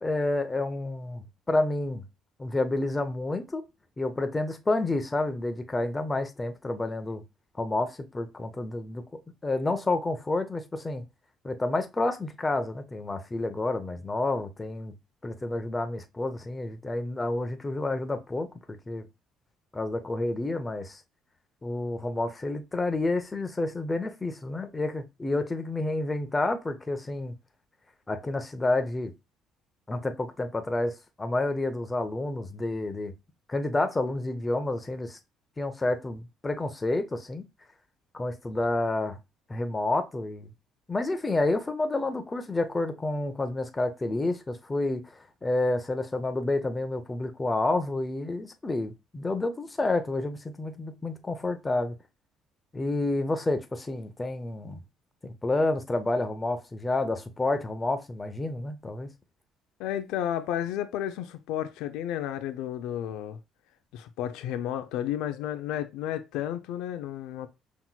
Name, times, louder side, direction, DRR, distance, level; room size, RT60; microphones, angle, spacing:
voice 1, 0.0-2.0 2.4-3.6 4.0-7.2 7.6-9.0 9.4-11.0 11.4-14.9 15.2-18.5 18.9-19.0 19.7-21.0 21.6-27.3 28.1-29.1 29.9-33.1 33.5-35.2 35.6-37.4 38.1-39.2 39.5-40.5 40.9-51.9 52.7-54.8 55.2-59.1, left 2 dB, 15° left, 0.6 m, -29 dB
voice 2, 59.8-63.4 63.9-67.5, left 11 dB, 85° left, 0.4 m, -32 dB
5.7 x 3.0 x 2.2 m
cardioid pair, 125°, 0 cm